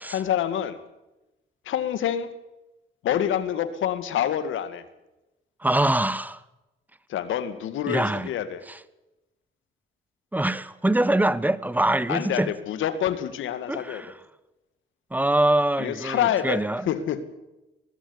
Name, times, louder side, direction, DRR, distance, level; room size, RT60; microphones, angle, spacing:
voice 1, 0.1-0.8 1.6-2.3 3.0-4.8 7.1-8.6 12.1-14.0 15.8-17.2, left 10 dB, 80° left, 2.3 m, -27 dB
voice 2, 5.6-6.4 7.9-8.3 10.3-12.5 13.7-14.1 15.1-16.9, right 1 dB, 10° right, 1.3 m, -23 dB
21.0 x 15.5 x 9.7 m
cardioid pair, 90°, 20 cm